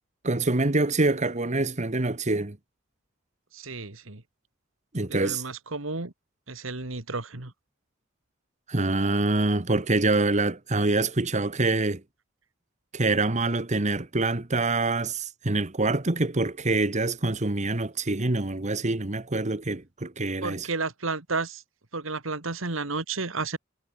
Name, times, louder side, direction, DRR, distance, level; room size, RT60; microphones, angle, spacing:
voice 1, 0.2-2.6 4.9-5.4 8.7-12.0 12.9-20.7, right 2 dB, 35° right, 1.4 m, -25 dB
voice 2, 3.5-4.2 5.1-6.1 6.5-7.5 20.4-21.6 21.9-23.6, right 3 dB, 70° right, 2.2 m, -32 dB
head